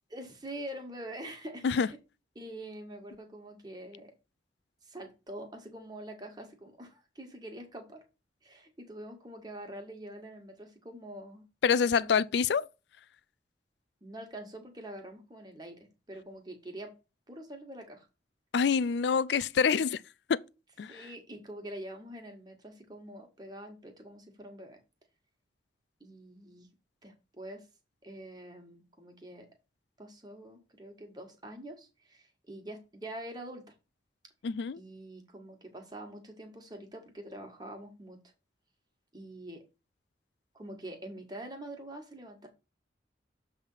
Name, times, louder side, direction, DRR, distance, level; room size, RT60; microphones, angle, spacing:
voice 1, 0.1-2.0 2.3-4.1 4.8-8.0 8.4-11.4 12.0-12.2 14.0-15.8 16.1-16.9 17.3-18.1 20.9-24.8 26.0-26.7 27.0-27.7 28.0-29.5 30.0-33.7 34.8-38.2 39.1-39.6 40.5-42.5, right 1 dB, 25° right, 1.6 m, -45 dB
voice 2, 11.6-12.7 18.5-20.0 20.3-20.4 20.8-21.1 34.4-34.8, left 6 dB, 75° left, 0.4 m, -26 dB
7.4 x 3.5 x 5.5 m
head